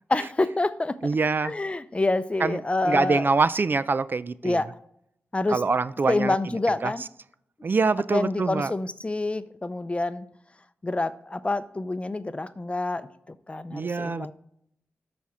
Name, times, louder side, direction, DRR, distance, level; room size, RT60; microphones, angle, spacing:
voice 1, 0.1-1.1 1.4-3.3 4.4-4.7 5.3-5.6 6.1-7.0 8.1-10.2 10.8-14.3, left 2 dB, 25° left, 0.6 m, -27 dB
voice 2, 1.0-1.5 2.4-2.6 2.9-4.6 5.5-6.3 6.8-6.9 7.6-8.7 13.7-14.3, right 4 dB, 45° right, 0.3 m, -24 dB
12.5 x 4.3 x 4.8 m
cardioid pair, 65°, 5 cm